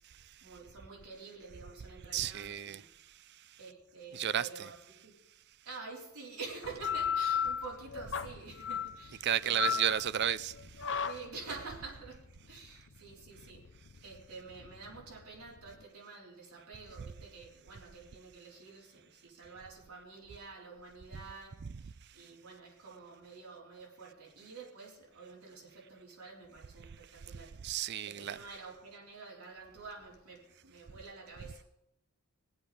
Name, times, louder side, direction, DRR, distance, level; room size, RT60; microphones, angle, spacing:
voice 1, 0.1-2.9 3.6-5.1 5.6-10.0 11.0-27.6 28.1-31.6, right 4 dB, 85° right, 3.9 m, -49 dB
voice 2, 2.1-2.8 4.1-4.7 9.2-10.5 21.6-21.8 27.6-28.4, right 10 dB, 50° right, 0.4 m, -32 dB
sound 1, 6.6-15.8, left 7 dB, 55° left, 0.5 m, -36 dB
21.5 x 8.1 x 5.0 m
head